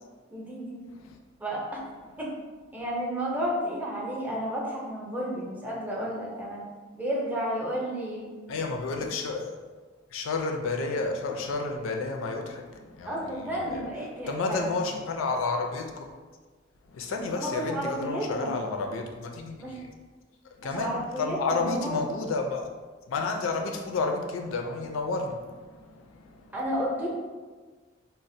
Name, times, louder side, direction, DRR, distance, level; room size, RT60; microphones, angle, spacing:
voice 1, 0.3-0.9 1.4-1.8 2.2-2.3 2.7-6.6 6.9-8.3 13.1-14.8 17.4-18.6 19.6-19.8 20.6-22.1 26.5-27.1, equal, 10° right, -4 dB, 0.6 m, -32 dB
voice 2, 8.5-9.5 10.1-13.9 14.3-16.1 16.9-19.8 20.4-22.7 23.1-26.6, left 3 dB, 90° left, 3 dB, 0.4 m, -31 dB
4.0 x 2.0 x 2.6 m, 1.4 s
head